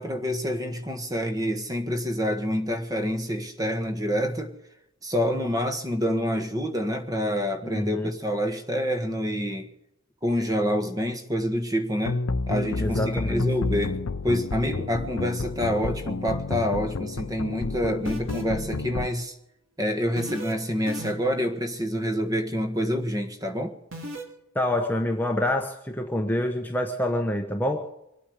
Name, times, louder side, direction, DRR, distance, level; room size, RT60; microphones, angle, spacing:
voice 1, 0.0-4.5 5.0-9.7 10.2-12.2 12.5-19.4 19.8-23.7, equal, 15° right, 6 dB, 1.6 m, -27 dB
voice 2, 7.6-8.1 12.8-13.5 24.5-27.9, left 1 dB, 10° left, 3 dB, 1.0 m, -27 dB
sound 1, 12.1-19.1, left 3 dB, 85° left, 0.7 m, -30 dB
sound 2, 18.1-18.6 20.2-20.5 20.9-21.4 23.9-24.2, right 1 dB, 65° right, 3.3 m, -35 dB
24.5 x 8.7 x 6.5 m, 0.83 s
head